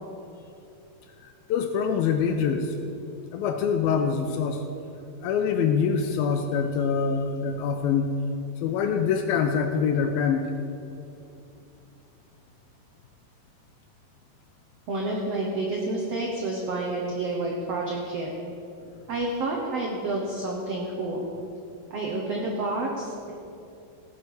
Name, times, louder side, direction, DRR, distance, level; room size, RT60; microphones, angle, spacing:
voice 1, 1.2-2.8 3.3-4.6 5.2-8.1 8.6-10.5, left 6 dB, 80° left, 6 dB, 2.3 m, -25 dB
voice 2, 14.9-18.3 19.1-21.3 21.9-23.3, right 2 dB, 80° right, -1 dB, 1.4 m, -29 dB
17.5 x 8.7 x 4.8 m, 2.7 s
omnidirectional pair, 4.7 m